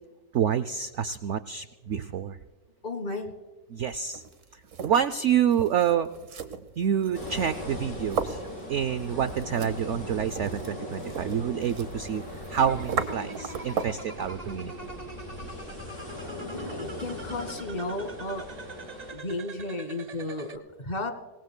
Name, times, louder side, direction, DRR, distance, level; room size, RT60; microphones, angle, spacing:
voice 1, 0.3-2.4 3.7-4.2 4.8-6.1 6.8-8.4 8.7-12.2 12.5-14.7, right 8 dB, 80° right, 13 dB, 0.6 m, -27 dB
voice 2, 2.8-3.3 16.4-18.4 19.1-21.1, left 2 dB, 25° left, 7 dB, 1.6 m, -34 dB
sound 1, 3.9-14.1, right 6 dB, 55° right, 1.3 m, -37 dB
sound 2, 7.1-19.1, left 1 dB, 85° left, 5.5 m, -39 dB
sound 3, 12.6-20.6, right 2 dB, 35° right, 0.7 m, -43 dB
26.5 x 18.5 x 2.2 m, 1.4 s
omnidirectional pair, 1.8 m